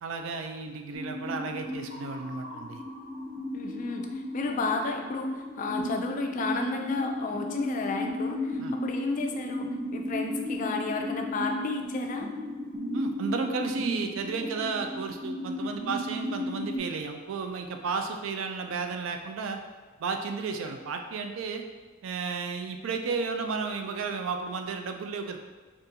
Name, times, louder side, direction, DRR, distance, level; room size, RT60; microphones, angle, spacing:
voice 1, 0.0-2.8 8.6-8.7 12.9-19.6 20.0-21.6 22.0-25.4, right 4 dB, 70° right, 5 dB, 0.3 m, -33 dB
sound 1, 0.9-16.8, left 1 dB, 55° right, 1.1 m, -35 dB
voice 2, 3.5-4.1 4.3-9.7 9.9-12.3, left 3 dB, 40° left, 4 dB, 0.3 m, -32 dB
3.7 x 2.4 x 2.7 m, 1.4 s
head